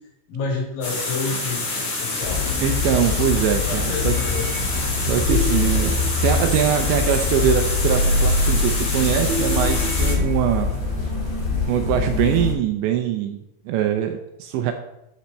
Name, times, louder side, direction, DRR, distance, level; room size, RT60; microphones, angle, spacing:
voice 1, 0.3-2.4 3.7-4.6, left 3 dB, 90° left, -2 dB, 5.5 m, -29 dB
sound 1, 0.8-10.1, left 2 dB, 40° left, 3.6 m, -27 dB
sound 2, 2.2-12.5, left 6 dB, 65° left, 6.9 m, -25 dB
voice 2, 2.6-4.2 5.1-10.7 11.7-13.4 13.7-14.7, right 10 dB, 80° right, 6 dB, 2.7 m, -22 dB
sound 3, 3.8-11.6, right 1 dB, 60° right, 3.1 m, -27 dB
11.5 x 7.3 x 4.3 m, 0.85 s
omnidirectional pair, 5.8 m